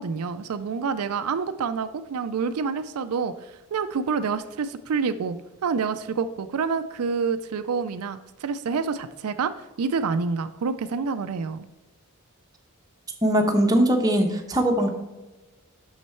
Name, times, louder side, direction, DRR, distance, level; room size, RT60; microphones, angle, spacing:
voice 1, 0.0-11.7, right 5 dB, 85° right, 11 dB, 0.4 m, -28 dB
voice 2, 13.2-14.9, right 1 dB, 15° right, 2 dB, 0.9 m, -21 dB
6.5 x 6.1 x 4.4 m, 1.1 s
head